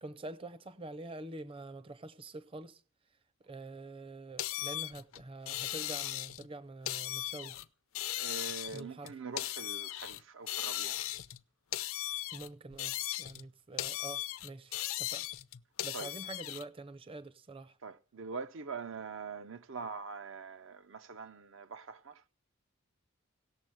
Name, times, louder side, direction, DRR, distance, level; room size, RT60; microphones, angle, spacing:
voice 1, 0.0-2.8 3.4-7.6 8.7-9.2 12.3-15.3 15.8-17.8, right 2 dB, 25° right, 0.6 m, -46 dB
sound 1, 4.4-6.5 6.9-7.7 8.0-10.2 10.5-11.4 11.7-13.5 13.8-16.6, left 14 dB, 80° left, 0.5 m, -37 dB
voice 2, 8.2-11.0 15.9-16.1 17.8-22.2, right 4 dB, 65° right, 0.6 m, -43 dB
17.5 x 7.1 x 7.6 m
head